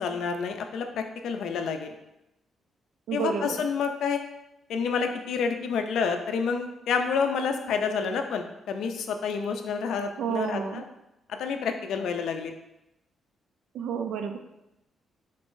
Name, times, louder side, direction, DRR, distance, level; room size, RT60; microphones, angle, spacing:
voice 1, 0.0-2.0 3.1-4.2 4.7-10.8 11.3-12.5, left 5 dB, 70° left, 5 dB, 0.4 m, -29 dB
voice 2, 3.1-3.6 10.2-10.8 13.7-14.4, right 7 dB, 85° right, 6 dB, 0.4 m, -30 dB
3.9 x 2.5 x 3.7 m, 0.92 s
cardioid pair, 175°, 0 cm